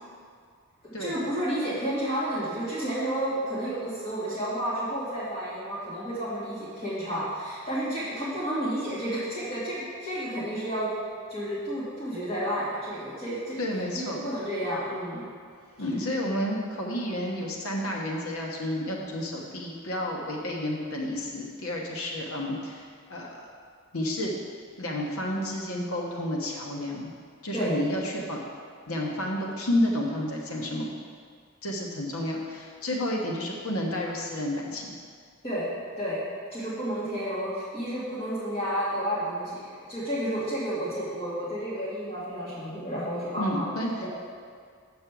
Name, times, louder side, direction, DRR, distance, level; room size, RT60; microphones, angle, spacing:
voice 1, 1.0-10.9 11.3-13.6 13.9-15.2 27.5-27.8 35.4-35.7 36.0-36.2 36.5-43.7 44.0-44.1, equal, 30° left, -10 dB, 2.3 m, -31 dB
voice 2, 13.6-14.2 15.8-23.5 23.9-24.3 24.8-27.1 27.4-28.4 28.9-30.9 31.6-34.9 43.4-43.9, left 1 dB, 65° left, -1 dB, 1.1 m, -30 dB
7.9 x 5.4 x 6.1 m, 2.1 s
head